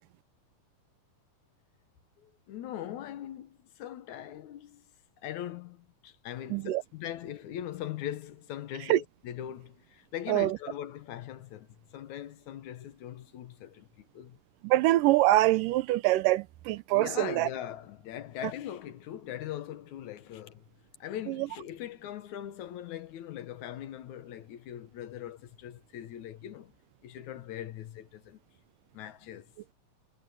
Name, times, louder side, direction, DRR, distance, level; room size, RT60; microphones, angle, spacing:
voice 1, 2.2-4.8 5.2-14.4 16.9-20.7 21.0-26.7 27.0-28.4 28.9-29.7, left 11 dB, 70° left, 2.4 m, -41 dB
voice 2, 6.5-6.8 8.9-9.0 10.3-10.6 14.6-17.5 21.3-21.5, right 16 dB, 90° right, 2.4 m, -24 dB
omnidirectional pair, 3.7 m